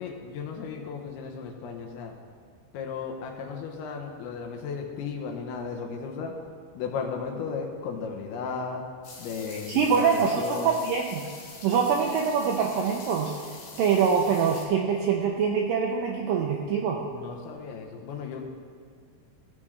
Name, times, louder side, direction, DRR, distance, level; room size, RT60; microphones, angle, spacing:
voice 1, 0.0-2.2 2.7-6.3 6.7-8.8 9.2-10.8 17.1-18.4, left 5 dB, 80° left, 2 dB, 2.8 m, -35 dB
sound 1, 9.0-14.7, left 4 dB, 60° left, 2.3 m, -45 dB
voice 2, 9.5-11.3 11.6-13.3 13.8-17.0, right 6 dB, 85° right, 1 dB, 2.0 m, -24 dB
15.0 x 7.3 x 3.3 m, 2.1 s
omnidirectional pair, 4.7 m